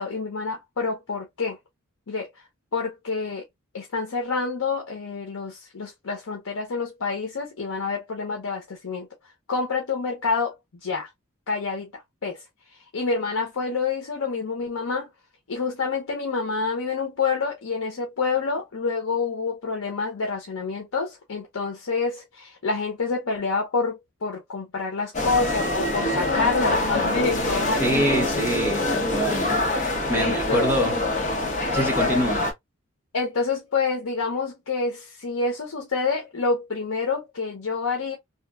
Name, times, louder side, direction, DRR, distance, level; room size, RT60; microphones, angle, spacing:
voice 1, 0.0-1.6 2.1-2.3 2.7-3.5 3.7-9.1 9.5-10.5 10.8-11.1 11.5-12.4 12.7-15.1 15.5-28.1 29.1-29.3 30.1-30.9 33.1-38.2, left 4 dB, 80° left, 0.7 m, -28 dB
sound 1, 25.1-32.5, left 2 dB, 35° left, 0.9 m, -25 dB
voice 2, 27.8-31.0 31.7-32.5, right 1 dB, 10° right, 0.9 m, -26 dB
2.8 x 2.5 x 2.3 m
head